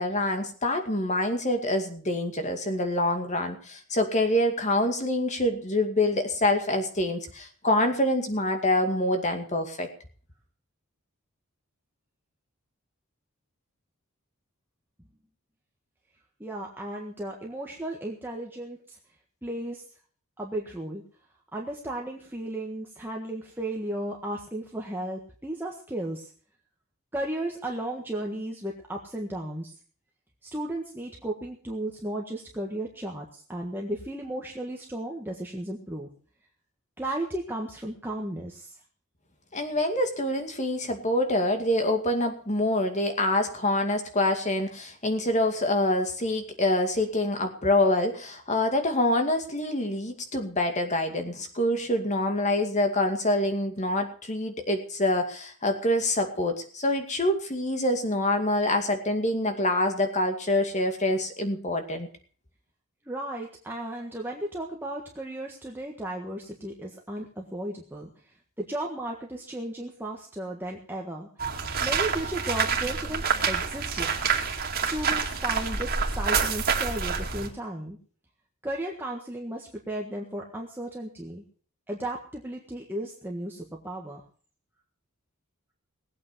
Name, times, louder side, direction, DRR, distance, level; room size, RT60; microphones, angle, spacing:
voice 1, 0.0-9.9 39.5-62.1, left 1 dB, 30° left, 6 dB, 2.2 m, -26 dB
voice 2, 16.4-19.0 19.4-19.8 20.4-21.0 21.5-26.3 27.1-29.7 30.4-36.1 37.0-38.8 63.0-71.3 71.8-74.3 74.8-78.0 78.6-81.4 81.9-84.2, right 1 dB, 10° right, -1 dB, 1.5 m, -35 dB
sound 1, 71.4-77.5, right 6 dB, 40° right, 2.5 m, -27 dB
19.0 x 8.7 x 6.2 m, 0.43 s
head